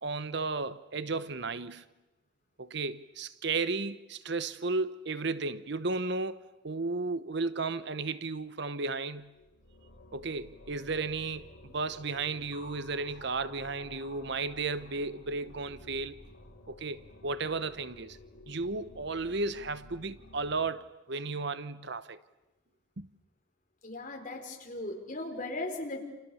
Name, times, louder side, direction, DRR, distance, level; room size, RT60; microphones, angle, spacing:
voice 1, 0.0-1.8 2.6-9.3 10.1-16.2 16.7-18.2 18.5-22.2 23.0-23.1, right 3 dB, 60° right, 0.9 m, -34 dB
sound 1, 9.2-20.7, left 2 dB, 85° left, 3.8 m, -52 dB
voice 2, 23.8-26.0, left 2 dB, 40° left, 4.7 m, -37 dB
29.5 x 28.5 x 7.1 m
head